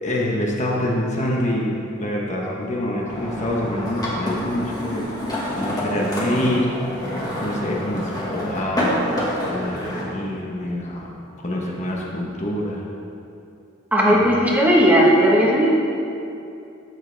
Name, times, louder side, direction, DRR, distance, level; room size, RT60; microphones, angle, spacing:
voice 1, 0.0-5.1 5.6-6.7 7.4-9.0 9.4-9.8 10.0-11.1 11.4-12.8 14.1-14.4, left 1 dB, 35° left, -3 dB, 1.2 m, -26 dB
sound 1, 3.1-10.0, left 1 dB, 20° left, 1.7 m, -27 dB
voice 2, 13.9-15.7, equal, 10° right, -4 dB, 1.3 m, -16 dB
12.5 x 7.5 x 3.4 m, 2.7 s
head